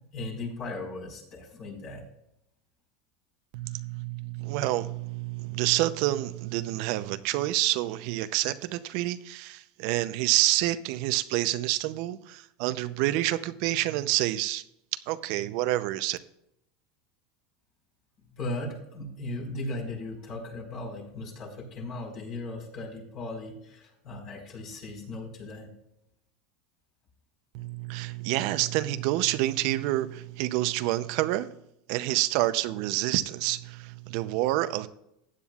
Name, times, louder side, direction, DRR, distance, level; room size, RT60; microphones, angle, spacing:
voice 1, 0.0-2.1 18.3-25.7, left 2 dB, 45° left, 0 dB, 4.6 m, -37 dB
voice 2, 3.5-14.6 14.9-16.2 27.5-31.5 31.9-34.9, right 16 dB, 60° right, 12 dB, 0.6 m, -28 dB
15.5 x 9.9 x 2.4 m, 0.80 s
supercardioid pair, 135°, 0 cm